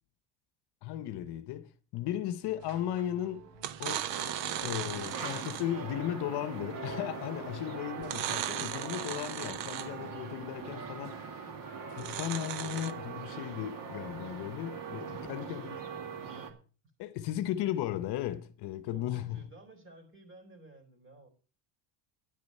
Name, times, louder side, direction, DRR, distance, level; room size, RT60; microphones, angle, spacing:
voice 1, 0.8-3.5 3.8-4.1 4.6-11.5 11.9-15.8 17.0-19.4, left 12 dB, 55° left, 0.9 m, -36 dB
sound 1, 2.4-16.6, right 3 dB, 90° right, 2.7 m, -55 dB
sound 2, 2.7-3.0 3.5-5.8 8.0-10.1 11.9-12.9, right 11 dB, 65° right, 1.1 m, -37 dB
sound 3, 4.1-16.5, right 5 dB, 45° right, 2.2 m, -42 dB
voice 2, 5.0-5.6 12.3-12.6 15.1-16.6 18.9-21.3, right 2 dB, 25° right, 3.9 m, -54 dB
10.5 x 10.0 x 5.4 m
cardioid pair, 135°, 47 cm